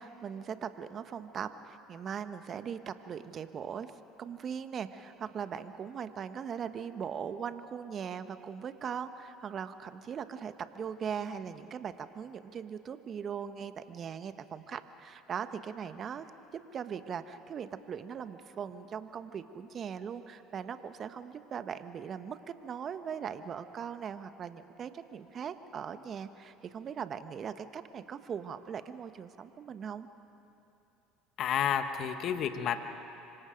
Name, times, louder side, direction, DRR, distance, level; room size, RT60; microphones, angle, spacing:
voice 1, 0.0-3.9 4.2-16.3 16.5-30.1, right 7 dB, 45° right, 11 dB, 1.1 m, -40 dB
voice 2, 31.4-32.8, left 8 dB, 55° left, 8 dB, 1.3 m, -30 dB
26.0 x 25.0 x 5.2 m, 2.8 s
hypercardioid pair, 70°, 0 cm